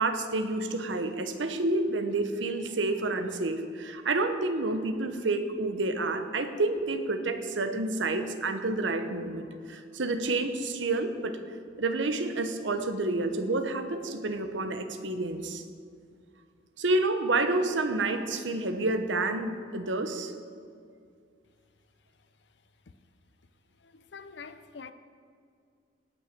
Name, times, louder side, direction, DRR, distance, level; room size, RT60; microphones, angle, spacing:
voice 1, 0.0-11.4 11.8-15.6 16.8-20.3, right 2 dB, 80° right, 9 dB, 0.9 m, -29 dB
voice 2, 23.8-24.9, left 5 dB, 65° left, 11 dB, 0.6 m, -45 dB
18.0 x 6.3 x 5.1 m, 2.3 s
head